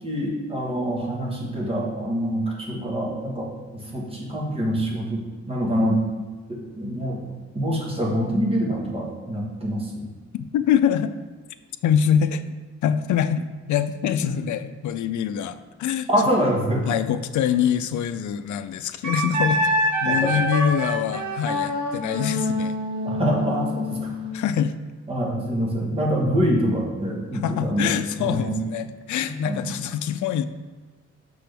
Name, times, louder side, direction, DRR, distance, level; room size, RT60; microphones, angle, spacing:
voice 1, 0.0-6.0 6.5-7.2 7.5-10.1 14.2-14.4 16.1-16.9 20.0-20.3 23.0-24.1 25.1-28.6 29.2-29.7, equal, 20° right, -3 dB, 1.3 m, -25 dB
voice 2, 10.3-11.1 11.8-12.4 12.8-16.1 16.9-19.7 20.0-22.8 24.3-24.7 27.4-30.4, left 9 dB, 85° left, 11 dB, 0.5 m, -24 dB
Wind instrument woodwind instrument, 19.0-24.4, equal, 80° right, 1.2 m, -25 dB
6.0 x 5.9 x 3.4 m, 1.4 s
wide cardioid pair, 165°, 29 cm